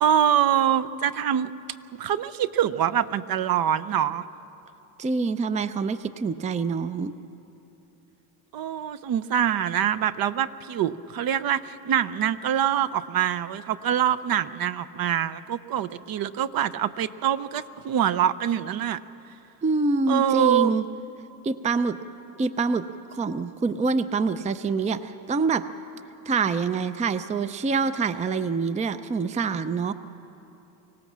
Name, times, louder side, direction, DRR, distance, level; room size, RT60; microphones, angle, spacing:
voice 1, 0.0-1.5 2.0-4.2 8.5-19.0 20.1-20.8, right 10 dB, 50° right, 13 dB, 0.7 m, -24 dB
voice 2, 5.0-7.1 19.6-20.8 21.4-22.0 22.4-22.8 23.1-25.7 26.3-29.9, right 4 dB, 15° right, 12 dB, 0.5 m, -25 dB
25.0 x 17.0 x 7.4 m, 2.9 s
cardioid pair, 100°, 45 cm